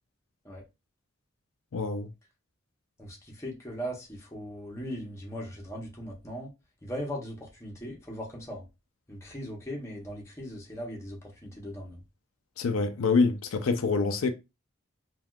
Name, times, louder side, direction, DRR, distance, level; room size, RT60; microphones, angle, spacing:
voice 1, 1.7-2.1 12.6-14.3, left 4 dB, 85° left, 0.5 m, -26 dB
voice 2, 3.0-6.5 6.8-8.6 9.1-12.0, equal, 15° left, 0.8 m, -39 dB
3.4 x 2.4 x 2.3 m
head